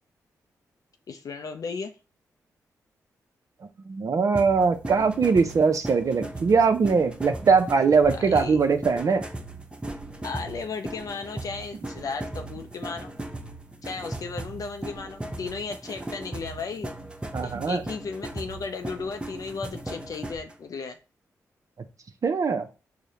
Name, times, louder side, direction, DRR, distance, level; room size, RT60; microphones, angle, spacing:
voice 1, 1.1-1.9 8.1-8.6 10.2-13.1 13.8-16.9 17.4-21.0, left 4 dB, 55° left, 0.4 m, -35 dB
voice 2, 3.9-9.2 17.3-17.8 22.2-22.7, right 5 dB, 55° right, 0.5 m, -21 dB
sound 1, 4.3-20.5, right 2 dB, 15° right, 0.7 m, -37 dB
4.7 x 2.0 x 2.8 m
supercardioid pair, 45°, 7 cm